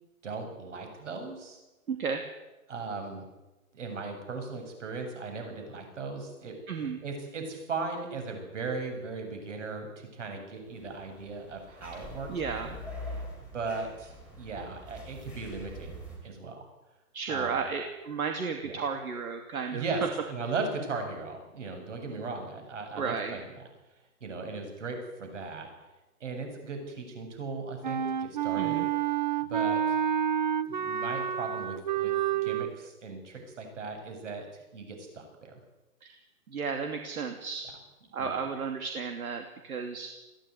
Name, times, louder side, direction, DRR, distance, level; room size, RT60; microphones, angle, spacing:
voice 1, 0.2-1.6 2.7-3.3 3.7-12.7 13.4-15.9 16.2-16.6 17.3-17.7 18.6-18.8 19.7-23.6 24.2-25.7 26.2-28.8 29.4-30.0 30.7-34.5 34.7-35.6 38.2-38.5, right 4 dB, 55° right, 4 dB, 7.7 m, -37 dB
voice 2, 1.9-2.2 6.7-7.0 11.9-12.0 12.3-12.7 17.1-19.8 23.0-23.4 28.6-28.9 36.0-36.2 36.5-37.7 38.1-40.1, right 5 dB, 75° right, 5 dB, 2.9 m, -33 dB
sound 1, 10.7-16.2, left 1 dB, 5° right, 3.4 m, -44 dB
Wind instrument woodwind instrument, 27.8-32.7, right 9 dB, 35° right, 0.8 m, -29 dB
22.0 x 16.0 x 9.6 m, 1.1 s
hypercardioid pair, 175°, 43 cm